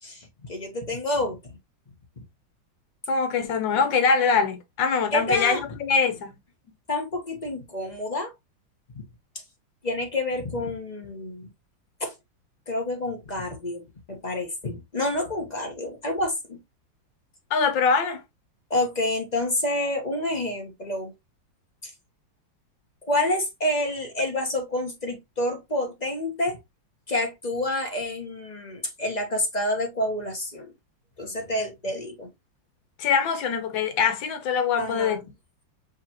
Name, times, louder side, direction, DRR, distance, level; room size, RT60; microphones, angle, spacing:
voice 1, 0.0-1.6 5.1-5.6 6.9-8.3 8.9-9.0 9.8-11.5 12.0-12.1 12.7-16.6 18.7-21.1 21.8-21.9 23.0-26.6 27.1-30.7 31.2-32.3 34.8-35.2, left 1 dB, 25° left, 1.1 m, -28 dB
voice 2, 3.1-6.4 17.5-18.2 33.0-35.3, left 5 dB, 80° left, 1.6 m, -23 dB
5.3 x 3.3 x 2.9 m
omnidirectional pair, 2.0 m